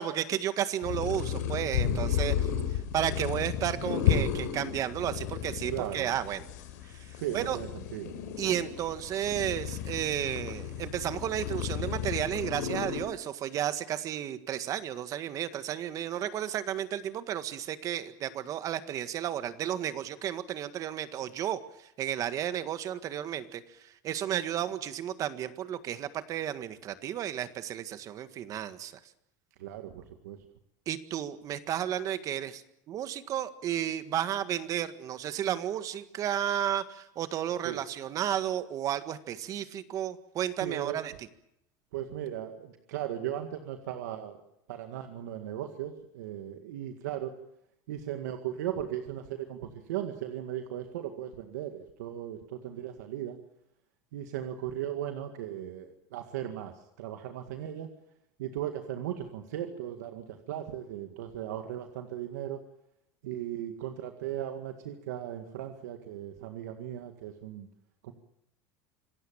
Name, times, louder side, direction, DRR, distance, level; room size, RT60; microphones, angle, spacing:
voice 1, 0.0-2.5 2.9-6.4 6.8-7.6 8.4-28.9 30.9-32.6 32.9-41.1, right 10 dB, 40° right, 11 dB, 1.7 m, -33 dB
sound 1, 0.8-13.0, left 8 dB, 90° left, 4.9 m, -33 dB
voice 2, 5.7-6.1 7.2-8.1 29.6-30.4 37.6-37.8 40.6-41.0 41.9-44.4 44.7-47.3 47.9-53.4 54.1-57.9 58.4-62.6 63.2-67.7 68.0-68.1, right 11 dB, 90° right, 6 dB, 2.0 m, -37 dB
26.5 x 16.5 x 8.8 m, 0.80 s
supercardioid pair, 135°, 9 cm